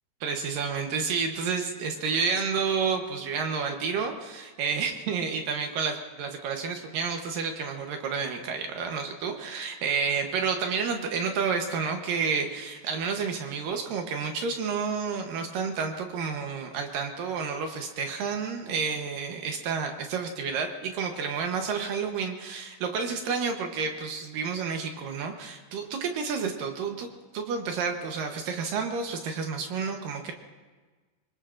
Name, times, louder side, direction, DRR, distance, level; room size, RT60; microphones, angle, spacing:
voice 1, 0.2-30.3, right 5 dB, 70° right, 4 dB, 2.6 m, -30 dB
25.5 x 21.0 x 2.5 m, 1.3 s
omnidirectional pair, 4.2 m